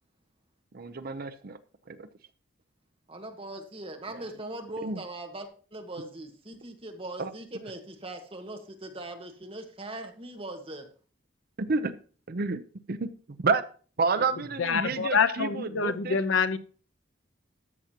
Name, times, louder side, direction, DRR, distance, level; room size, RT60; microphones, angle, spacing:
voice 1, 0.7-1.6 1.9-2.1 4.8-5.0 7.2-7.3 11.6-11.9 12.3-12.6 12.9-13.1 13.4-13.6 14.0-16.2, right 4 dB, 50° right, 0.6 m, -29 dB
voice 2, 3.1-10.9, right 2 dB, 30° right, 1.5 m, -40 dB
voice 3, 14.6-16.6, left 5 dB, 90° left, 0.7 m, -26 dB
13.0 x 7.2 x 2.9 m
head